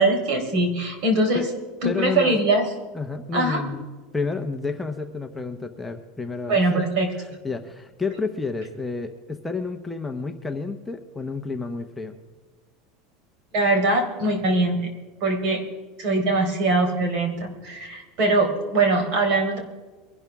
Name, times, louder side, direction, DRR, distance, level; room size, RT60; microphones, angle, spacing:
voice 1, 0.0-1.5 1.8-2.6 3.3-3.6 6.5-7.1 13.5-14.9 15.2-15.6 16.0-19.6, right 2 dB, 50° right, 3 dB, 4.1 m, -22 dB
voice 2, 1.8-2.4 2.9-3.9 4.1-6.8 7.4-12.2, left 4 dB, 5° left, 4 dB, 0.8 m, -30 dB
23.0 x 12.0 x 3.5 m, 1.4 s
supercardioid pair, 155°, 0 cm